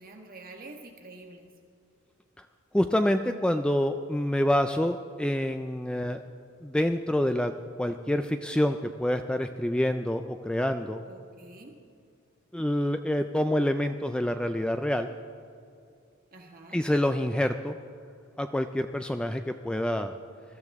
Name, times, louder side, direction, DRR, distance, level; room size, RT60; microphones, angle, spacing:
voice 1, 0.0-1.5 11.1-11.7 16.3-16.8, right 2 dB, 45° right, 2 dB, 1.6 m, -47 dB
voice 2, 2.7-6.2 6.6-7.5 7.8-11.0 12.5-15.1 16.7-17.8 18.4-20.1, left 1 dB, 5° left, 7 dB, 0.3 m, -27 dB
21.5 x 13.0 x 3.6 m, 2.4 s
head